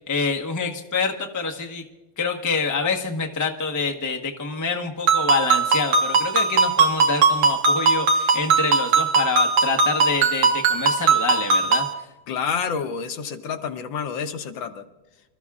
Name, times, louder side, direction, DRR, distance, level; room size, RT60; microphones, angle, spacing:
voice 1, 0.1-1.8 2.2-11.9, left 4 dB, 20° left, 2 dB, 0.4 m, -26 dB
Ringtone, 5.1-11.9, right 4 dB, 80° right, 2.2 m, -19 dB
voice 2, 12.3-14.8, left 6 dB, 65° left, 7 dB, 1.5 m, -28 dB
26.0 x 13.5 x 2.4 m, 1.1 s
omnidirectional pair, 2.4 m